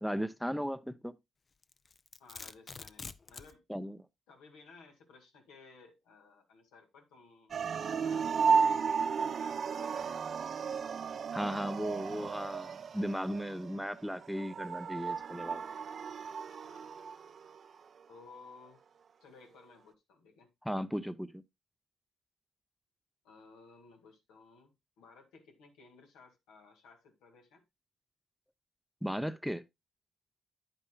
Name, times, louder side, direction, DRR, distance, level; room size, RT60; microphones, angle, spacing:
voice 1, 0.0-1.1 3.7-4.0 11.3-15.6 20.6-21.4 29.0-29.6, equal, ahead, 0.6 m, -36 dB
Domestic sounds home sounds, 1.6-3.5, left 4 dB, 40° left, 0.5 m, -46 dB
voice 2, 2.2-3.6 4.3-8.9 9.3-10.4 11.0-11.8 16.6-16.9 18.1-18.8 19.2-20.5 23.2-27.6, left 4 dB, 90° left, 2.0 m, -58 dB
sound 1, 7.5-17.6, right 6 dB, 55° right, 0.5 m, -34 dB
9.5 x 8.9 x 2.2 m
supercardioid pair, 65°, 0 cm